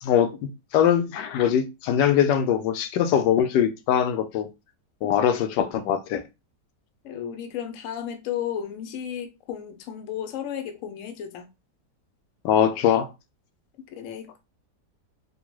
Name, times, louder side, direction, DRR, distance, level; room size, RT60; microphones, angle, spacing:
voice 1, 0.0-0.4 0.7-4.5 5.0-6.2 12.4-13.1, left 9 dB, 85° left, 1.2 m, -22 dB
voice 2, 7.0-11.5 13.9-14.4, left 9 dB, 65° left, 0.8 m, -33 dB
3.6 x 2.2 x 3.0 m
omnidirectional pair, 1.8 m